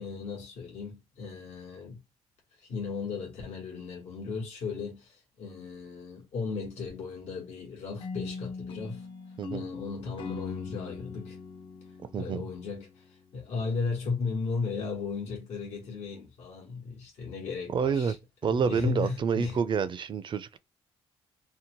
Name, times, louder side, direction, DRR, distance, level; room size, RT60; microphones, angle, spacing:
voice 1, 0.0-2.0 2.6-9.1 9.5-11.4 12.1-18.2 18.4-19.6, left 4 dB, 85° left, 1.1 m, -36 dB
sound 1, 8.0-13.1, left 4 dB, 45° left, 0.5 m, -40 dB
voice 2, 17.7-18.2 18.4-20.6, right 6 dB, 45° right, 0.4 m, -28 dB
2.7 x 2.1 x 2.9 m
cardioid pair, 90°, 11 cm